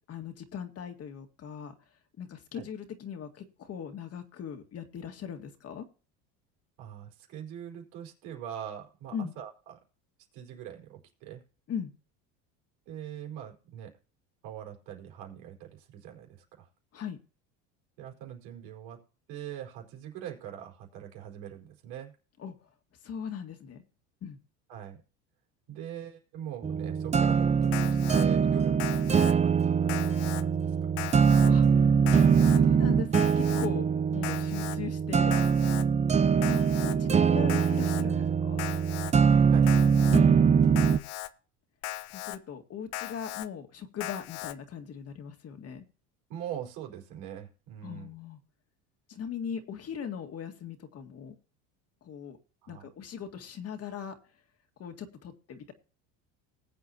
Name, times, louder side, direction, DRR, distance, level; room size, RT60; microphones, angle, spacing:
voice 1, 0.1-1.7 2.2-5.8 9.1-9.3 11.7-11.9 16.9-17.2 22.4-22.5 23.0-23.8 24.2-24.4 31.4-31.9 32.4-33.9 34.1-35.3 36.4-38.6 42.1-45.8 47.8-48.4 49.1-51.3 52.0-52.4 52.7-54.1 54.8-55.7, left 7 dB, 40° left, 6 dB, 2.0 m, -39 dB
voice 2, 6.8-9.8 10.3-11.4 12.9-13.9 14.4-16.7 18.0-19.0 19.3-22.1 24.7-25.0 25.7-31.1 37.1-37.6 38.0-38.4 39.5-39.7 46.3-48.1 52.6-52.9, right 10 dB, 80° right, 2 dB, 4.9 m, -42 dB
sound 1, 26.6-41.0, right 6 dB, 20° right, 0.5 m, -23 dB
Alarm, 27.7-28.3 28.8-29.3 29.9-30.4 31.0-31.5 32.1-32.6 33.1-33.7 34.2-34.8 35.3-35.8 36.4-37.0 37.5-38.0 38.6-39.1 39.7-40.2 40.8-41.3 41.8-42.4 42.9-43.5 44.0-44.5, left 16 dB, 85° left, 0.9 m, -38 dB
20.0 x 8.5 x 2.9 m, 0.37 s
supercardioid pair, 115°, 36 cm